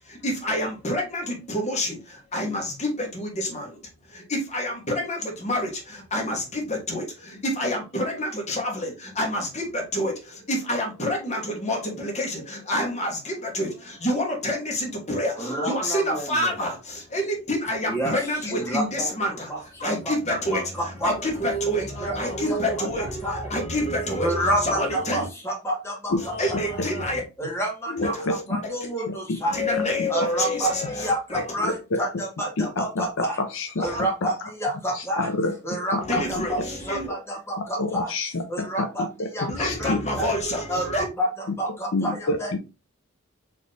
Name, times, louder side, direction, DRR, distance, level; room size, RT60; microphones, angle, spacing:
voice 1, 0.0-25.3 26.2-27.2 28.0-28.9 29.5-31.5 33.8-34.0 36.0-37.1 39.5-41.0, left 1 dB, 35° left, 1.4 m, -28 dB
voice 2, 15.4-16.5 17.8-18.1 18.4-19.1 19.5-21.1 21.8-22.2 22.8-23.5 24.2-26.6 27.4-29.6 30.1-33.4 33.8-35.3 35.6-38.1 38.5-40.3 40.7-42.6, right 1 dB, 10° left, 1.4 m, -29 dB
voice 3, 26.1-26.9 27.9-28.6 29.1-29.2 30.0-30.1 31.3-32.0 32.6-33.8 34.2-34.3 34.9-35.6 35.9-36.5 37.8-40.0 41.5-42.6, left 2 dB, 65° left, 0.6 m, -28 dB
4.3 x 3.1 x 3.3 m
head